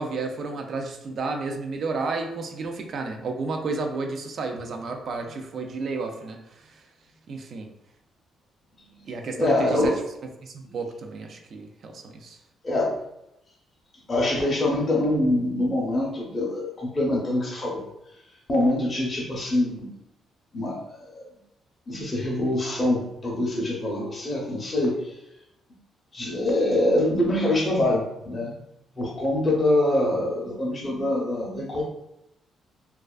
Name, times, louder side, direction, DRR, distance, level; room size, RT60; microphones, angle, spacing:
voice 1, 0.0-6.8 7.3-7.7 9.1-9.9 10.4-12.4, right 3 dB, 55° right, 4 dB, 0.3 m, -32 dB
voice 2, 9.4-10.0 12.6-13.0 14.1-17.9 18.5-19.9 20.5-21.3 21.9-25.0 26.1-28.5 29.0-31.8, left 1 dB, 30° left, -2 dB, 0.6 m, -24 dB
2.3 x 2.2 x 2.3 m, 0.85 s
cardioid pair, 90°, 0 cm